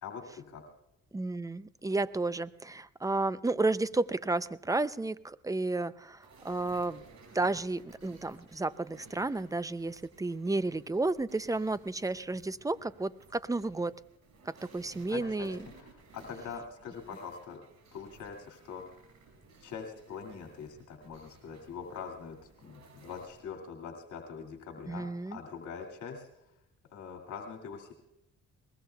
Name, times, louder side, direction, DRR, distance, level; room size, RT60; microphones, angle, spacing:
voice 1, 0.0-0.6 15.1-15.5 15.8-17.6 17.9-19.0 19.6-26.3 26.9-27.9, left 6 dB, 70° left, 1 dB, 2.4 m, -43 dB
voice 2, 1.1-7.0 7.3-14.0 14.5-15.6 24.9-25.4, right 2 dB, 10° right, 16 dB, 0.5 m, -32 dB
sound 1, 6.2-23.4, right 3 dB, 65° right, 6.0 m, -57 dB
23.0 x 20.5 x 2.3 m, 0.86 s
cardioid pair, 90°, 30 cm